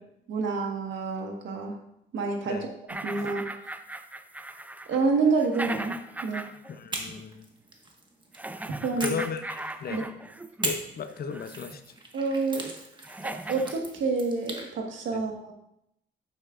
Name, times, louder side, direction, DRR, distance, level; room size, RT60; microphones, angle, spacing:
voice 1, 0.3-1.8 2.1-2.7 3.0-3.4 4.9-6.4 8.8-9.2 9.9-10.0 12.1-12.7 13.2-15.5, right 4 dB, 70° right, 2 dB, 1.5 m, -28 dB
sound 1, 2.9-6.8 7.1-7.2 8.3-10.8 11.3-11.9 12.6-12.7 13.0-13.8, right 2 dB, 10° right, 0.5 m, -38 dB
voice 2, 6.7-7.5 9.0-10.0 10.6-11.8 15.1-15.2, left 6 dB, 50° left, 9 dB, 0.7 m, -35 dB
sound 2, 6.9-8.4 9.0-10.0 10.6-14.7, right 2 dB, 25° right, 1.4 m, -39 dB
8.5 x 7.8 x 2.5 m, 0.78 s
cardioid pair, 90°, 20 cm